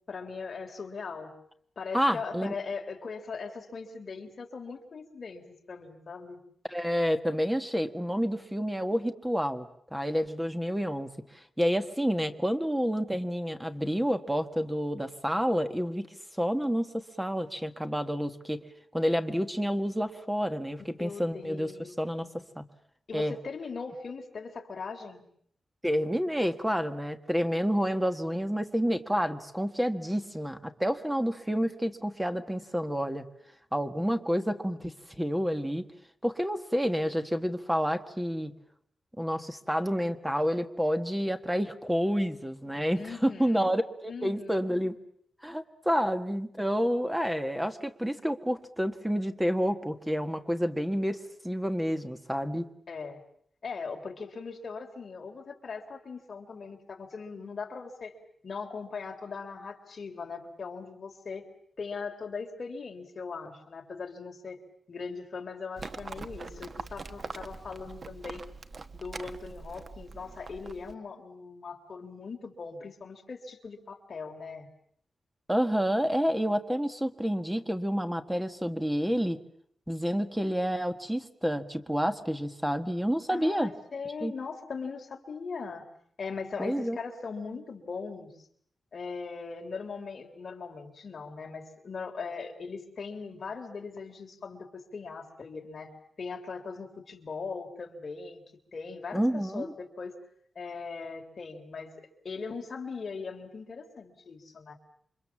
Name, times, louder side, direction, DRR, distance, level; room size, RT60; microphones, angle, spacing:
voice 1, 0.1-1.3 1.8-6.4 21.0-22.0 23.1-25.2 42.9-43.7 44.1-44.6 52.9-53.2 53.6-58.1 58.4-61.4 61.8-64.6 64.9-68.4 68.9-74.7 83.3-85.8 86.2-88.3 88.9-95.9 96.2-98.4 98.7-100.2 100.6-104.7, left 4 dB, 45° left, 3 dB, 3.6 m, -40 dB
voice 2, 1.9-2.5 6.7-11.1 11.6-16.1 16.4-18.6 18.9-21.7 22.0-22.6 23.1-23.3 25.8-33.3 33.7-35.9 36.2-38.5 39.2-45.0 45.4-52.7 75.5-79.4 79.9-83.7 84.2-84.3 86.6-87.0 99.1-99.7, equal, 5° right, 8 dB, 1.6 m, -29 dB
Livestock farm animals working animals, 65.8-70.9, right 4 dB, 45° right, 1.0 m, -43 dB
29.0 x 25.5 x 7.3 m, 0.67 s
wide cardioid pair, 145°, 0 cm